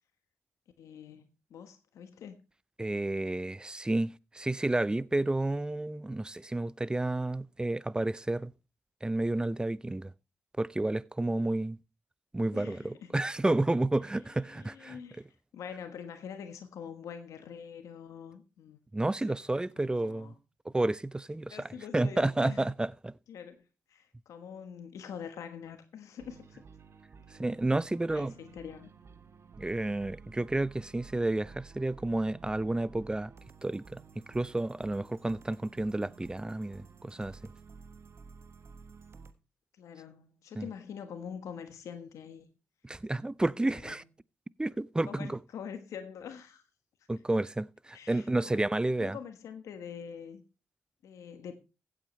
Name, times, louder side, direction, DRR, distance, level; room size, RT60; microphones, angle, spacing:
voice 1, 0.8-2.4 12.5-13.1 14.5-15.2 15.5-18.8 19.3-19.4 19.8-20.4 21.5-22.6 23.3-26.6 28.1-28.9 39.8-42.5 43.6-44.0 45.1-46.6 47.9-48.6 49.0-50.4 51.0-51.6, left 7 dB, 75° left, 1.3 m, -45 dB
voice 2, 2.8-8.5 9.0-10.1 10.6-11.8 12.3-15.0 18.9-20.3 20.7-23.2 27.4-28.3 29.6-33.3 33.6-37.5 40.6-40.7 42.8-44.0 44.6-45.4 47.1-49.2, right 2 dB, 15° right, 0.5 m, -31 dB
sound 1, 26.2-39.3, right 5 dB, 55° right, 1.3 m, -53 dB
16.0 x 8.8 x 3.2 m
supercardioid pair, 45°, 5 cm